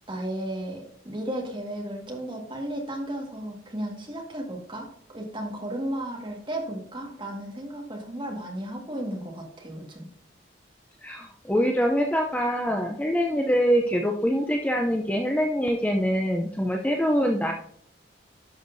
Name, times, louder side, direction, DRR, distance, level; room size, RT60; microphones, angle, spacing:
voice 1, 0.1-10.1, right 1 dB, 25° right, 0 dB, 1.8 m, -34 dB
voice 2, 11.0-17.5, equal, 10° left, 2 dB, 0.5 m, -24 dB
11.5 x 6.5 x 2.7 m, 0.63 s
head